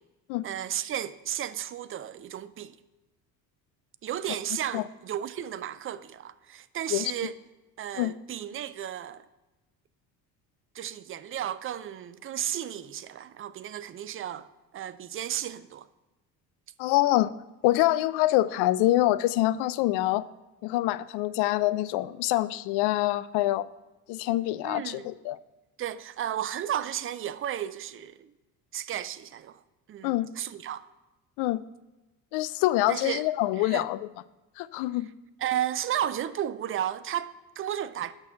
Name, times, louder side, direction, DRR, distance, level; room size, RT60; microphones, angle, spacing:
voice 1, 0.4-2.8 4.0-7.3 7.8-9.2 10.7-14.5 14.7-15.9 24.6-25.1 25.8-28.3 28.7-29.6 29.9-30.8 32.9-33.2 33.6-33.9 35.4-38.1, right 10 dB, 30° right, 0.4 m, -33 dB
voice 2, 16.8-17.3 17.6-20.2 20.6-23.7 24.1-25.4 30.0-30.3 31.4-31.7 32.3-34.0 34.6-35.1, left 16 dB, 55° left, 0.5 m, -25 dB
8.8 x 6.1 x 5.6 m
hypercardioid pair, 55°, 50 cm